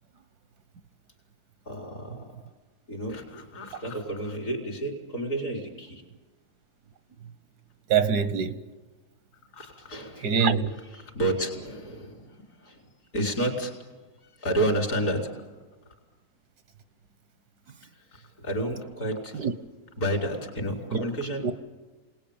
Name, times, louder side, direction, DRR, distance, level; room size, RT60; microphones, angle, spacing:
voice 1, 1.6-2.4 2.9-6.0 9.5-10.3 10.9-13.7 14.2-15.5 17.9-19.5 20.0-21.5, right 1 dB, 70° left, 4.8 m, -31 dB
voice 2, 7.9-8.6 10.2-10.7 19.4-19.5 20.9-21.0 21.4-21.5, right 6 dB, 85° right, 1.7 m, -24 dB
27.0 x 19.5 x 8.9 m
omnidirectional pair, 1.7 m